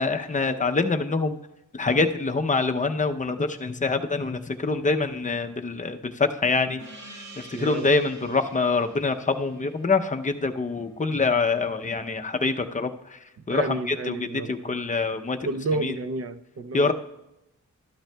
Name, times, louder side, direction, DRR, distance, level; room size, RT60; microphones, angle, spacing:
voice 1, 0.0-1.4 1.7-6.8 7.4-13.2 13.5-15.4 15.8-16.0 16.7-16.9, left 3 dB, 25° left, 0.6 m, -25 dB
Gong, 6.8-11.9, right 2 dB, 70° right, 2.1 m, -48 dB
voice 2, 7.5-7.9 8.2-8.4 13.5-14.8 15.4-16.9, right 3 dB, 50° right, 0.6 m, -31 dB
13.0 x 11.5 x 2.2 m
wide cardioid pair, 135°, 31 cm